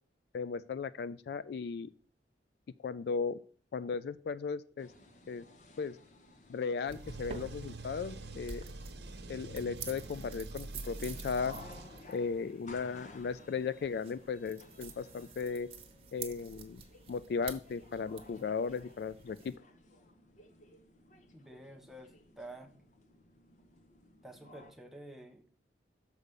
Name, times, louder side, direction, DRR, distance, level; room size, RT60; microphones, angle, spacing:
voice 1, 0.3-1.9 2.8-3.4 3.7-4.9 5.3-5.4 5.8-6.0 6.5-8.6 9.3-11.5 12.1-15.7 16.1-16.8 17.1-19.5, left 5 dB, 60° left, 15 dB, 0.3 m, -36 dB
sound 1, 4.8-24.7, left 2 dB, 40° left, 0.9 m, -57 dB
sound 2, 6.9-19.6, right 6 dB, 30° right, 1.0 m, -50 dB
sound 3, 6.9-12.4, right 2 dB, 70° right, 1.0 m, -46 dB
voice 2, 21.3-22.7 24.2-25.6, right 1 dB, ahead, 2 dB, 0.9 m, -50 dB
6.6 x 5.0 x 6.7 m, 0.43 s
head